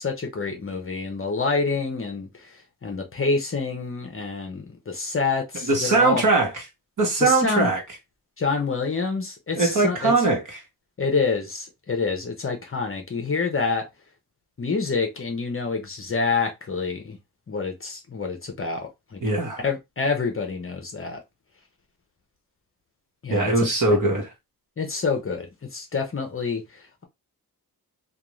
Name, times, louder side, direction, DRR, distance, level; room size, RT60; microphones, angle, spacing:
voice 1, 0.0-6.2 7.2-7.7 8.4-10.1 11.0-13.9 14.6-17.2 17.5-19.2 19.6-21.2 23.2-23.5 24.8-27.1, left 4 dB, 35° left, 0.6 m, -27 dB
voice 2, 5.7-6.5 7.0-7.8 9.6-10.4 19.2-19.6 23.3-24.3, right 3 dB, 55° right, 1.1 m, -20 dB
2.5 x 2.3 x 3.0 m
wide cardioid pair, 160°, 39 cm